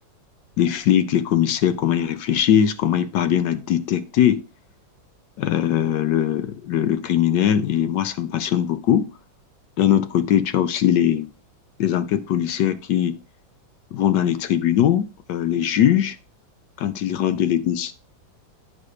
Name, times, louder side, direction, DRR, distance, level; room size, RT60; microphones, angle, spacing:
voice 1, 0.6-4.4 5.4-9.1 9.8-11.3 11.8-13.2 13.9-16.2 16.8-17.9, left 10 dB, 70° left, 1.2 m, -20 dB
9.8 x 4.1 x 4.7 m
omnidirectional pair, 2.1 m